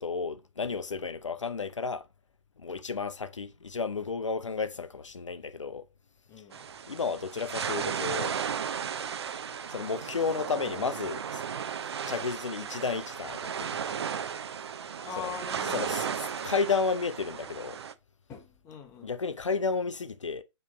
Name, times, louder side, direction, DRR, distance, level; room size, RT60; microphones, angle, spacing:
voice 1, 0.0-2.1 2.6-5.9 6.9-8.3 9.7-11.4 12.1-14.0 15.2-15.4 15.7-17.8 19.0-20.4, left 5 dB, 75° left, 0.6 m, -32 dB
voice 2, 6.3-6.7 15.0-16.0 18.3-19.1, left 6 dB, 20° left, 1.0 m, -42 dB
sound 1, 6.5-17.9, right 7 dB, 60° right, 0.6 m, -35 dB
7.3 x 3.3 x 3.9 m
figure-of-eight pair, 125°, 16 cm